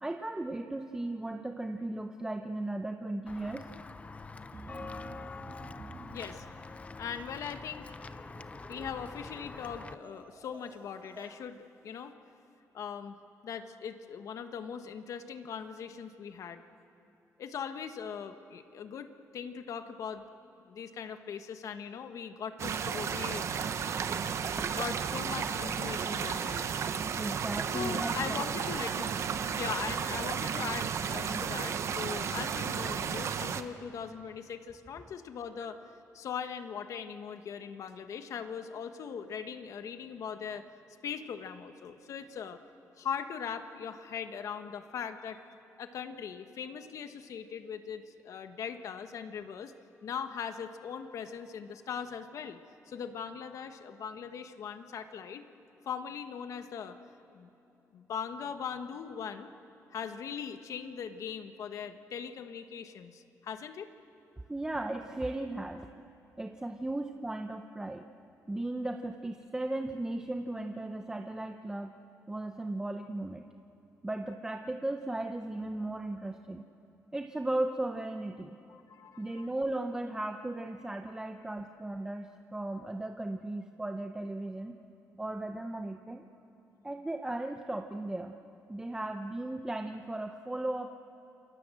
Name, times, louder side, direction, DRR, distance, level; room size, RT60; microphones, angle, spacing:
voice 1, 0.0-3.6 27.1-28.5 64.5-65.9 66.4-68.0 68.5-71.9 72.3-73.4 74.0-76.6 77.1-78.6 79.2-84.8 85.2-86.2 86.8-88.4 88.7-90.9, right 2 dB, 10° right, 5 dB, 0.8 m, -36 dB
Walk footsteps / Bell, 3.3-9.9, left 4 dB, 25° left, 0.6 m, -45 dB
sound 1, 4.5-11.4, right 3 dB, 30° right, 1.6 m, -51 dB
voice 2, 6.1-6.5 7.0-8.0 8.7-12.2 12.7-13.2 13.4-16.6 17.4-20.2 20.6-23.6 24.8-26.7 27.7-29.1 29.4-35.8 36.1-40.7 41.0-42.6 43.0-45.4 45.8-49.7 50.0-52.6 52.9-55.5 55.8-57.0 57.3-57.5 57.9-59.5 59.9-63.9 78.7-79.5, left 7 dB, 65° left, 8 dB, 1.4 m, -40 dB
sound 2, 22.6-33.6, right 7 dB, 55° right, 0.9 m, -33 dB
28.5 x 23.5 x 7.7 m, 3.0 s
cardioid pair, 125°, 6 cm